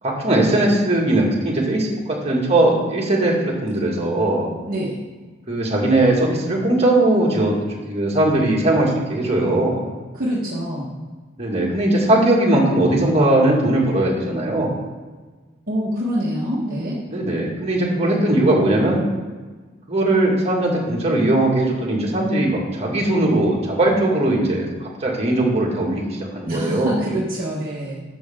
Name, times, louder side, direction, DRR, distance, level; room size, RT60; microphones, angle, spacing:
voice 1, 0.0-4.5 5.5-7.6 7.8-9.8 11.4-14.8 17.1-19.0 19.9-27.0, right 1 dB, 30° right, -3 dB, 2.1 m, -19 dB
voice 2, 4.7-5.0 10.1-11.0 15.7-17.0 26.4-28.0, equal, 45° right, -6 dB, 1.4 m, -25 dB
11.5 x 6.6 x 3.7 m, 1.4 s
head